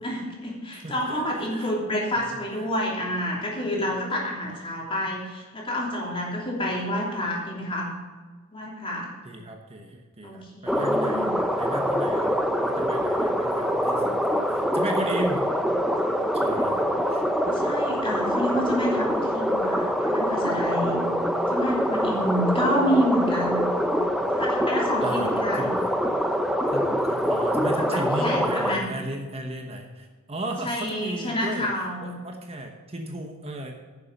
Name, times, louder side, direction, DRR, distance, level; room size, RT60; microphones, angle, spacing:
voice 1, 0.0-7.9 8.5-9.1 10.2-11.3 17.4-21.0 21.5-23.7 24.3-25.7 27.8-28.9 30.6-32.2, equal, 25° left, -2 dB, 3.1 m, -28 dB
voice 2, 0.7-1.7 4.5-4.6 9.2-12.4 12.6-14.2 14.5-15.4 16.3-17.2 25.0-25.9 26.4-31.7 32.0-33.7, right 1 dB, 30° right, 3 dB, 1.1 m, -35 dB
sound 1, 10.7-28.8, equal, ahead, 0.6 m, -24 dB
11.0 x 7.1 x 6.8 m, 1.4 s
head